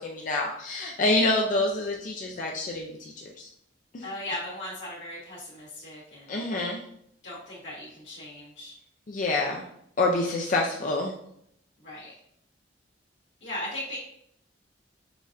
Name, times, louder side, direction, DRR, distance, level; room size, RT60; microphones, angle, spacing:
voice 1, 0.0-3.5 3.9-4.0 6.3-6.8 9.1-9.6 10.0-11.1, left 2 dB, 45° left, 0 dB, 0.4 m, -27 dB
voice 2, 4.0-6.4 7.2-8.7 11.8-12.1 13.4-14.0, left 1 dB, 85° left, -9 dB, 1.5 m, -38 dB
5.9 x 2.5 x 2.6 m, 0.71 s
head